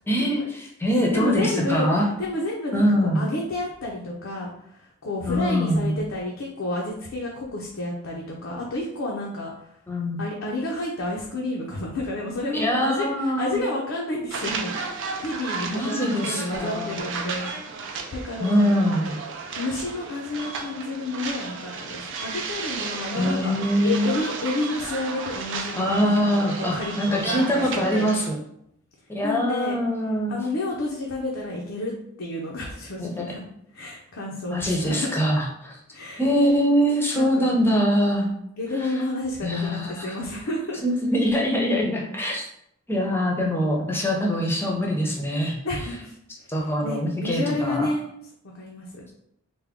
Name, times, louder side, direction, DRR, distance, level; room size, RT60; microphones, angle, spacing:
voice 1, 0.1-2.1 2.7-3.2 5.3-6.0 9.9-10.2 12.5-13.6 15.7-17.0 18.4-19.1 23.2-24.1 25.8-28.4 29.1-30.4 33.0-33.3 34.5-35.8 36.2-38.3 39.4-40.2 40.8-42.5 42.9-45.6 46.5-47.9, equal, 10° left, -1 dB, 0.6 m, -23 dB
voice 2, 1.1-1.9 2.2-9.5 10.2-17.5 18.1-18.6 19.6-23.5 23.8-26.9 27.2-27.4 27.7-28.1 29.2-29.8 30.3-31.9 32.2-33.4 33.7-35.1 35.9-36.2 37.1-37.5 38.6-40.8 43.4-43.5 45.6-46.1 46.8-48.1 48.5-49.0, left 2 dB, 70° left, -2 dB, 0.6 m, -30 dB
sound 1, 14.3-28.3, right 4 dB, 60° right, 0.4 m, -34 dB
3.4 x 2.2 x 3.5 m, 0.73 s
head